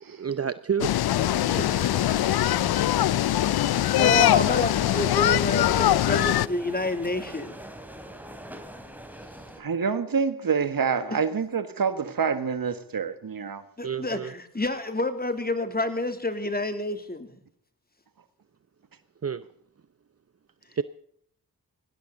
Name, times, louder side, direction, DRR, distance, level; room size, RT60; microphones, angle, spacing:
voice 1, 0.1-1.0 13.8-14.3 19.2-19.4 20.8-20.9, right 7 dB, 40° right, 0.8 m, -29 dB
sound 1, 0.8-6.5, left 13 dB, 85° left, 0.5 m, -22 dB
sound 2, 1.1-9.6, equal, 5° right, 3.4 m, -41 dB
voice 2, 1.6-1.9 4.0-7.6 13.8-17.4, left 2 dB, 25° left, 3.0 m, -29 dB
voice 3, 9.6-13.6, right 6 dB, 65° right, 1.7 m, -27 dB
19.0 x 16.0 x 4.0 m
cardioid pair, 55°, 37 cm